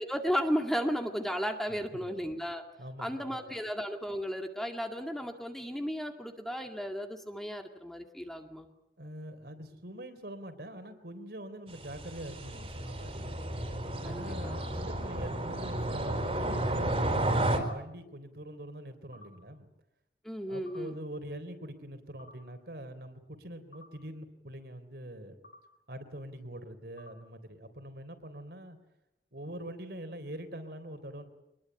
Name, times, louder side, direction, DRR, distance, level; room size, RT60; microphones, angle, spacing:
voice 1, 0.0-2.6 3.0-8.7 14.0-14.6 20.2-21.0, equal, ahead, 4 dB, 2.1 m, -34 dB
voice 2, 2.8-3.4 9.0-13.3 14.0-19.7 20.5-25.4 25.9-28.8 29.3-31.2, right 1 dB, 60° right, 9 dB, 3.6 m, -44 dB
sound 1, 11.7-17.6, right 1 dB, 30° right, 3.8 m, -32 dB
sound 2, 14.5-14.7 16.1-16.2 17.6-17.7 19.1-19.3 20.7-20.8 22.2-22.3 23.7-23.9 25.4-25.6 27.0-27.1, left 2 dB, 60° left, 6.7 m, -52 dB
25.5 x 21.0 x 9.0 m, 0.86 s
head